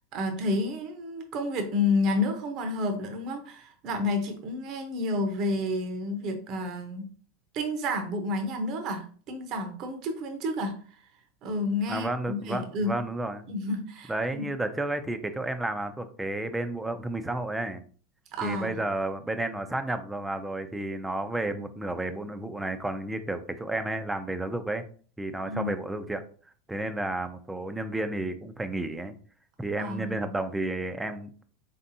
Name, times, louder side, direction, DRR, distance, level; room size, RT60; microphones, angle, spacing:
voice 1, 0.1-7.1 7.5-11.0 11.4-12.9 13.5-14.5 18.3-18.7 25.4-25.7 29.8-30.1, left 2 dB, 50° right, 5 dB, 0.8 m, -30 dB
voice 2, 11.9-13.5 14.1-17.8 18.4-24.8 25.2-26.2 26.7-29.1 29.6-31.3, right 2 dB, 10° right, 9 dB, 0.5 m, -32 dB
4.1 x 3.4 x 2.7 m, 0.43 s
hypercardioid pair, 105°, 0 cm